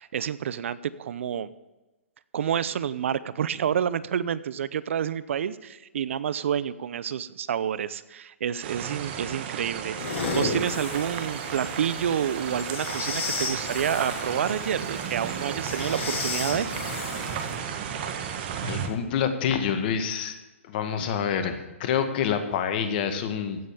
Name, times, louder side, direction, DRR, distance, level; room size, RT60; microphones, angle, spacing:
voice 1, 0.0-1.5 2.3-16.7, right 9 dB, 65° right, 17 dB, 0.6 m, -29 dB
sound 1, 8.6-18.9, right 7 dB, 45° right, 1.7 m, -34 dB
sound 2, 9.9-17.5, left 3 dB, 60° left, 5.8 m, -34 dB
voice 2, 18.6-20.4 20.7-23.6, left 7 dB, 45° left, 8 dB, 1.7 m, -27 dB
15.5 x 5.4 x 9.9 m, 1.1 s
hypercardioid pair, 140°, 7 cm